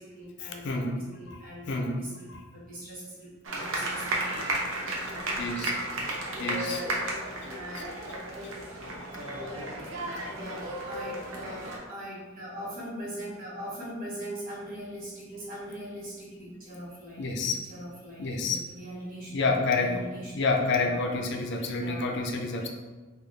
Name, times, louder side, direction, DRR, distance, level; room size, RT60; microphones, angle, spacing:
voice 1, 0.0-5.9 6.2-8.7 9.4-9.7 10.3-20.3 20.8-21.3 21.6-22.3, equal, 45° right, -7 dB, 1.3 m, -42 dB
sound 1, 3.4-11.8, right 1 dB, 85° right, 0.7 m, -33 dB
voice 2, 5.4-5.7 6.4-6.8 17.2-17.6 18.2-18.6 19.3-20.0 20.3-22.7, left 3 dB, 60° left, 3 dB, 0.4 m, -28 dB
3.7 x 2.4 x 3.3 m, 1.2 s
head